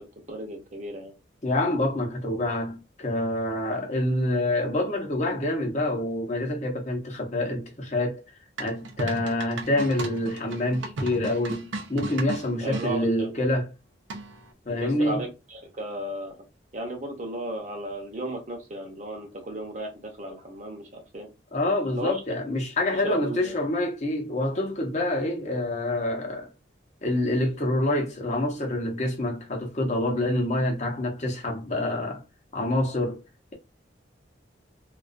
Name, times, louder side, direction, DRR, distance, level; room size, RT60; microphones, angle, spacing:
voice 1, 0.3-1.1 12.6-13.3 14.8-16.4 16.7-21.3 21.9-22.2 22.9-23.6, right 1 dB, 40° right, 0.7 m, -34 dB
voice 2, 1.4-8.2 8.6-13.7 14.7-15.2 21.5-26.5 27.0-32.2 32.5-33.2, left 1 dB, 40° left, 0.7 m, -27 dB
sound 1, 8.6-12.9 14.1-14.5, right 2 dB, 90° right, 0.5 m, -35 dB
2.3 x 2.3 x 2.4 m
head